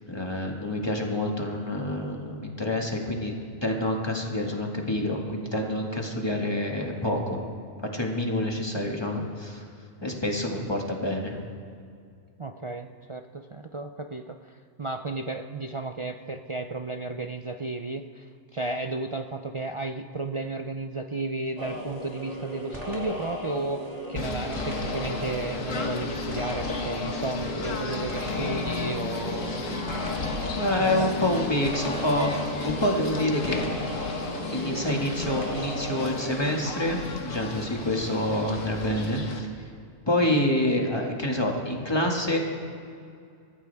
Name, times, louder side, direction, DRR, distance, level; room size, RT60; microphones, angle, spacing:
voice 1, 0.1-3.3 3.6-7.4 7.9-9.6 10.0-11.4 30.6-33.7 34.5-39.5 40.1-42.4, left 1 dB, 20° left, 0 dB, 2.0 m, -27 dB
voice 2, 12.4-29.8 30.8-31.1, right 2 dB, 50° right, 5 dB, 0.3 m, -33 dB
sound 1, 21.6-36.5, equal, 30° right, 2.8 m, -36 dB
Singing / Bird, 24.1-39.4, left 4 dB, 75° left, 1.7 m, -34 dB
28.0 x 14.5 x 3.5 m, 2.3 s
omnidirectional pair, 1.4 m